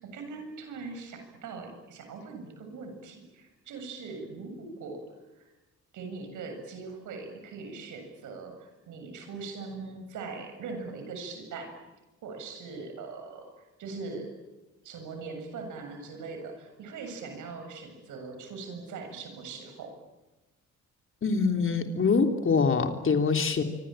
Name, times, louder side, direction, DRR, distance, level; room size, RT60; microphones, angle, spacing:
voice 1, 0.0-5.0 5.4-5.5 5.9-11.7 12.2-14.3 14.8-19.9, right 4 dB, 80° right, 6 dB, 7.6 m, -41 dB
voice 2, 21.2-23.6, left 5 dB, 45° left, 6 dB, 3.5 m, -24 dB
25.5 x 25.0 x 9.1 m, 1.1 s
cardioid pair, 90°, 30 cm